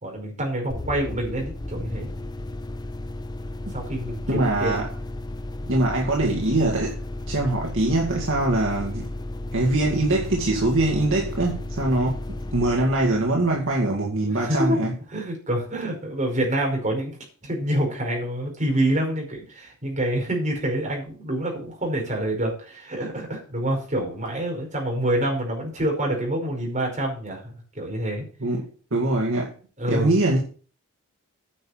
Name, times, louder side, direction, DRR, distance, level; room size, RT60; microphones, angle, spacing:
voice 1, 0.0-2.1 3.7-4.8 14.3-14.8 15.1-28.3 29.8-30.2, right 1 dB, 35° right, 5.1 m, -27 dB
sound 1, 0.7-14.2, left 1 dB, 20° left, 0.6 m, -34 dB
voice 2, 4.3-4.9 5.7-7.0 7.3-9.1 9.5-14.9 28.4-29.5 29.9-30.4, right 2 dB, 60° right, 2.2 m, -23 dB
9.9 x 6.7 x 7.4 m
head